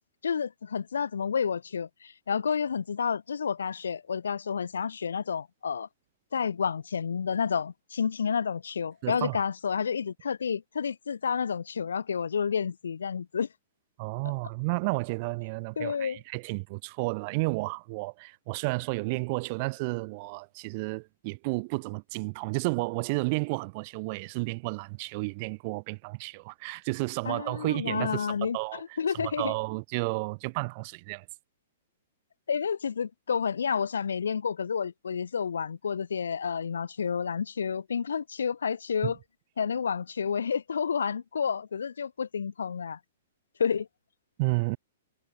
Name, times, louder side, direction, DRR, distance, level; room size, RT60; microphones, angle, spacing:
voice 1, 0.2-5.9 6.3-13.5 15.8-16.2 27.3-29.5 32.5-39.2 39.6-43.0 43.6-43.9, left 6 dB, 85° left, 5.7 m, -30 dB
voice 2, 9.0-9.4 14.0-28.8 29.1-31.2 39.0-39.1 44.4-44.8, right 28 dB, 45° right, 3.1 m, -32 dB
hypercardioid pair, 130°, 0 cm